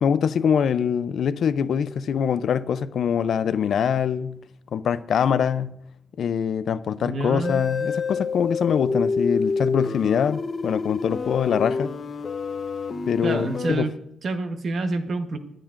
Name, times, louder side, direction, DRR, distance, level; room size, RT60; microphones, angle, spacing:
voice 1, 0.0-4.4 4.7-5.7 6.2-11.9 13.1-13.9, left 7 dB, 60° left, 0.4 m, -23 dB
voice 2, 7.0-7.6 13.2-13.9 14.2-15.4, right 2 dB, 45° right, 1.0 m, -27 dB
sound 1, 7.4-13.7, left 4 dB, 35° left, 0.8 m, -28 dB
22.0 x 9.0 x 2.5 m
wide cardioid pair, 165°, 0 cm